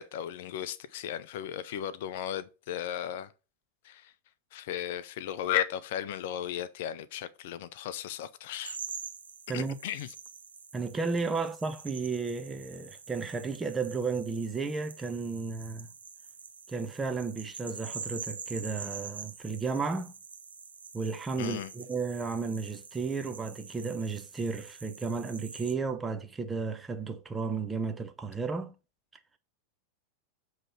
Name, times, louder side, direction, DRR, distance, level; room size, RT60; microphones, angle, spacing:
voice 1, 0.0-3.3 3.8-4.1 4.5-8.8 9.5-10.1 21.4-21.7, left 10 dB, 50° left, 0.5 m, -35 dB
sound 1, 8.6-25.7, right 5 dB, 75° right, 0.9 m, -45 dB
voice 2, 10.7-15.9 16.7-20.1 20.9-28.7, right 4 dB, 15° right, 0.8 m, -33 dB
7.6 x 3.2 x 5.7 m
figure-of-eight pair, 90°, 0 cm